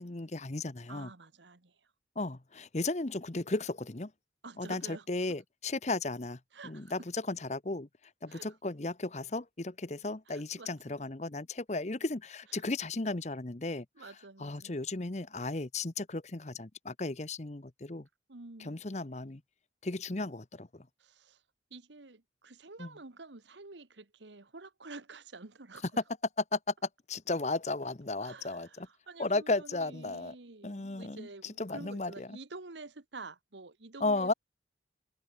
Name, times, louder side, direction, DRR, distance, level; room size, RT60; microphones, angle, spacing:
voice 1, 0.0-1.1 2.2-4.1 4.6-7.9 8.2-13.8 14.4-18.1 18.6-19.4 19.8-20.9 22.8-22.9 26.5-26.7 27.1-28.9 29.2-30.3 30.6-32.4 34.0-34.3, left 2 dB, 40° left, 1.0 m, -35 dB
voice 2, 0.9-1.7 4.4-5.1 6.5-6.9 8.3-8.5 10.3-11.1 12.5-12.6 13.9-14.8 18.3-18.8 21.0-21.4 21.7-25.8 28.2-34.3, right 3 dB, 90° right, 1.5 m, -49 dB
head